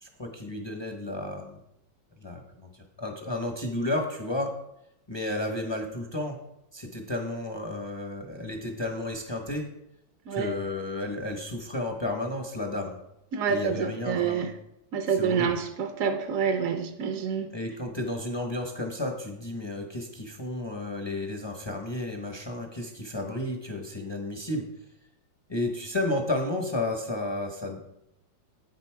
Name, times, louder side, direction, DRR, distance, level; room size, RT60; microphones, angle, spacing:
voice 1, 0.0-1.6 2.2-4.5 5.1-6.4 6.7-9.6 10.3-13.0 13.5-14.5 15.2-15.6 17.5-24.6 25.5-27.9, left 1 dB, 35° left, 3 dB, 0.4 m, -32 dB
voice 2, 13.3-14.5 14.9-17.5, right 7 dB, 65° right, 7 dB, 0.8 m, -27 dB
8.7 x 6.8 x 4.6 m, 0.84 s
omnidirectional pair, 2.1 m